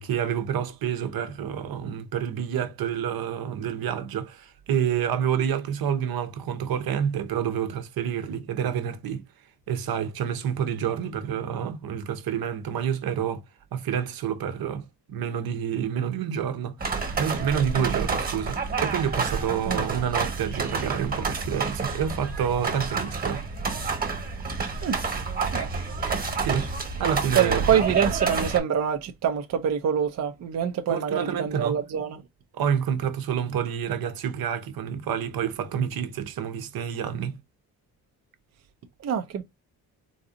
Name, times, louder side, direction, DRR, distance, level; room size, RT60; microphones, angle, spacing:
voice 1, 0.0-9.2 9.7-13.4 13.7-16.8 17.2-23.4 26.4-27.7 30.9-31.8 32.5-37.4, right 8 dB, 70° right, 0.9 m, -28 dB
sound 1, 16.8-28.6, right 4 dB, 25° right, 1.2 m, -29 dB
voice 2, 27.4-32.2 39.0-39.4, right 8 dB, 45° right, 0.5 m, -25 dB
4.0 x 2.5 x 2.6 m
cardioid pair, 115°, 37 cm